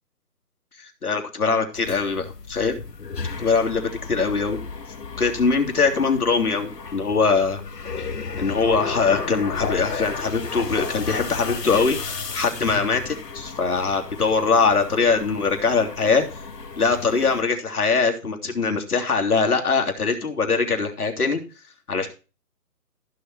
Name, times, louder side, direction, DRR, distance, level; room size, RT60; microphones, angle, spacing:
voice 1, 0.8-2.8 3.4-4.6 5.2-7.6 8.0-8.1 8.4-16.4 16.8-21.4 21.9-22.1, left 4 dB, 70° left, 3 dB, 3.3 m, -22 dB
sound 1, 1.7-17.4, left 4 dB, 90° left, 2.0 m, -34 dB
14.5 x 7.1 x 4.7 m, 0.33 s
hypercardioid pair, 175°, 47 cm